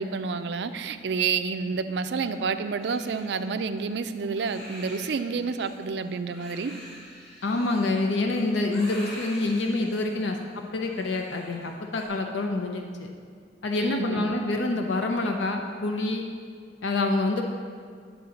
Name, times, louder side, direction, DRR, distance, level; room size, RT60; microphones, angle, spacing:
voice 1, 0.0-6.7 13.8-14.3, right 5 dB, 65° right, 9 dB, 0.4 m, -29 dB
Crying sobbing, 2.8-12.1, equal, 40° left, 2.3 m, -46 dB
voice 2, 7.4-13.1 13.6-16.2 16.8-17.4, left 2 dB, 80° left, 3 dB, 0.6 m, -27 dB
9.3 x 3.7 x 6.9 m, 2.1 s
head